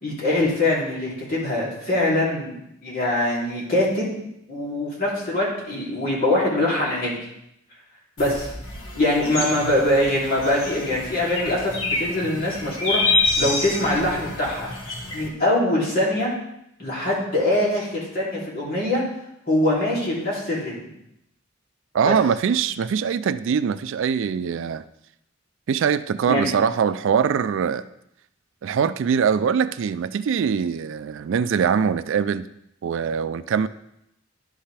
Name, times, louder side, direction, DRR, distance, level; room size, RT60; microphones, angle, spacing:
voice 1, 0.0-2.5 2.8-4.1 4.5-7.1 8.2-8.5 8.9-14.7 15.1-16.3 16.8-19.0 19.5-20.7 22.0-22.1 26.3-26.5, left 1 dB, 45° left, -6 dB, 3.1 m, -23 dB
sound 1, 8.2-15.3, left 2 dB, 75° left, 1.5 m, -27 dB
voice 2, 21.9-24.8 25.7-27.8 28.6-32.5 32.8-33.7, right 7 dB, 65° right, 14 dB, 0.3 m, -22 dB
11.0 x 5.6 x 3.4 m, 0.80 s
head